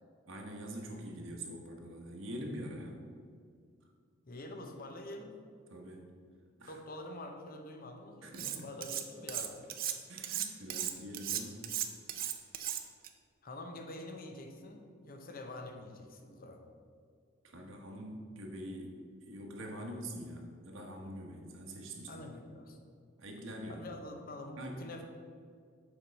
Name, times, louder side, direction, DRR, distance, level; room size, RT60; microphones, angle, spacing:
voice 1, 0.3-3.0 5.7-6.1 6.6-6.8 8.2-8.7 10.1-11.6 17.4-22.2 23.2-23.9 24.6-24.8, equal, 80° right, 0 dB, 1.2 m, -44 dB
voice 2, 4.2-5.4 6.7-9.6 13.4-16.6 22.1-22.8 23.7-25.0, left 1 dB, 45° left, 3 dB, 0.9 m, -46 dB
Cutlery silverware, 8.3-9.0 9.3-13.1, right 11 dB, 50° right, 0.5 m, -36 dB
7.2 x 4.7 x 5.2 m, 2.1 s
head